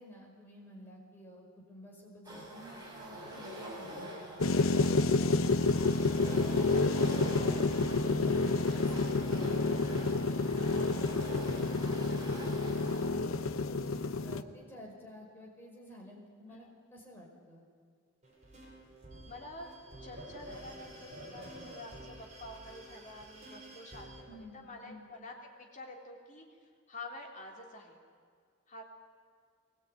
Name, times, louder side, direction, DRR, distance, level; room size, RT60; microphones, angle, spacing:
voice 1, 0.0-4.4 5.2-5.6 6.2-12.9 13.7-14.0 14.2-17.7 24.3-25.1, left 1 dB, 10° left, -2 dB, 5.5 m, -51 dB
sound 1, 2.2-13.0, equal, 20° right, 6.5 m, -44 dB
sound 2, 4.4-14.4, left 3 dB, 85° left, 0.9 m, -29 dB
sound 3, 18.2-24.2, right 1 dB, 35° right, 6.4 m, -49 dB
voice 2, 19.2-19.7 20.0-26.4 26.9-28.0 28.7-28.8, left 2 dB, 40° left, 0 dB, 3.4 m, -48 dB
22.5 x 20.0 x 9.3 m, 2.1 s
head